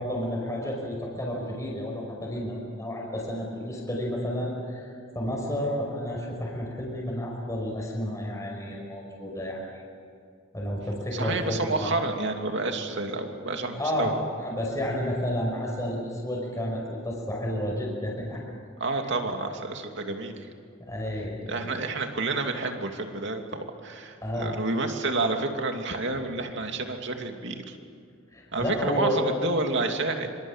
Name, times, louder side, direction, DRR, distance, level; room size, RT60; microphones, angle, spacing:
voice 1, 0.0-9.6 10.5-11.9 13.7-18.4 20.8-21.7 24.2-24.6 28.3-29.2, equal, 15° left, -2 dB, 5.3 m, -31 dB
voice 2, 11.1-14.1 18.8-20.5 21.5-27.8 28.5-30.3, right 3 dB, 60° right, 4 dB, 2.7 m, -29 dB
26.0 x 25.5 x 7.5 m, 2.3 s
head